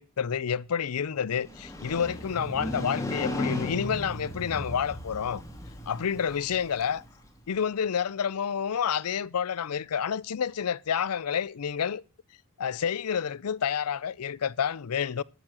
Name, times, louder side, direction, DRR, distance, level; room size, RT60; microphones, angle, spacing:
voice 1, 0.0-5.4 5.9-7.0 7.5-12.0 12.6-15.2, left 7 dB, 85° left, 0.5 m, -29 dB
Motorcycle, 1.3-7.3, left 1 dB, 15° left, 2.1 m, -35 dB
13.0 x 7.4 x 6.1 m
head